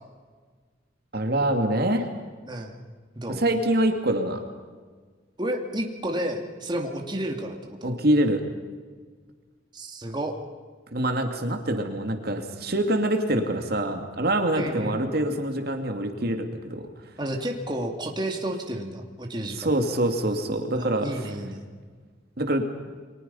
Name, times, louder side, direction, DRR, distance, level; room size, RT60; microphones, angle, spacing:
voice 1, 1.1-2.1 3.3-4.4 7.8-8.4 10.9-16.8 19.6-21.3 22.4-22.6, right 1 dB, 55° right, 5 dB, 2.4 m, -25 dB
voice 2, 5.4-8.0 9.7-10.4 14.5-15.0 17.2-19.7 20.7-21.7, right 1 dB, 25° right, 2 dB, 2.5 m, -31 dB
29.5 x 24.0 x 5.6 m, 1.5 s
head